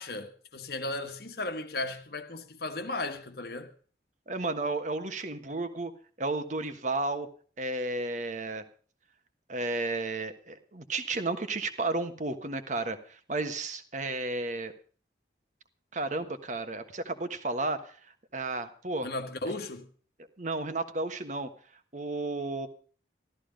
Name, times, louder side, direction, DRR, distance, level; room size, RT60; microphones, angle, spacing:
voice 1, 0.0-3.7 19.0-19.9, left 2 dB, 60° left, 1.3 m, -35 dB
voice 2, 4.3-5.9 6.2-7.3 7.6-8.6 9.5-14.7 15.9-18.0 18.3-19.1 20.4-21.5 21.9-22.7, right 2 dB, 40° right, 1.4 m, -32 dB
14.0 x 13.5 x 5.2 m
head